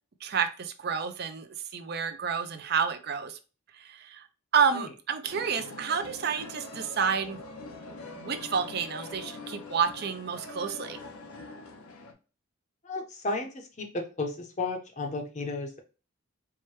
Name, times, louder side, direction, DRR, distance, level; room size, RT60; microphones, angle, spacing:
voice 1, 0.2-3.4 3.8-4.2 4.5-7.4 8.2-11.0, right 6 dB, 50° right, 0.4 m, -30 dB
sound 1, 5.3-12.1, left 3 dB, 90° left, 0.7 m, -43 dB
voice 2, 12.8-15.8, left 3 dB, 35° left, 0.6 m, -33 dB
4.5 x 2.2 x 3.0 m
head